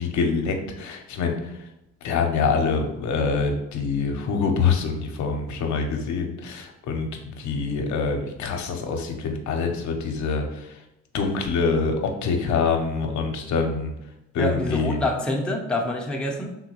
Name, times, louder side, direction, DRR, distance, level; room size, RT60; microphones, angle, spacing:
voice 1, 0.0-1.5 2.0-7.1 7.4-10.7 11.1-12.0 12.2-13.9 14.3-15.0, left 5 dB, 70° left, 3 dB, 0.6 m, -25 dB
voice 2, 14.4-16.5, left 1 dB, 5° left, 0 dB, 0.5 m, -26 dB
3.6 x 2.1 x 2.9 m, 0.89 s
cardioid pair, 90°, 30 cm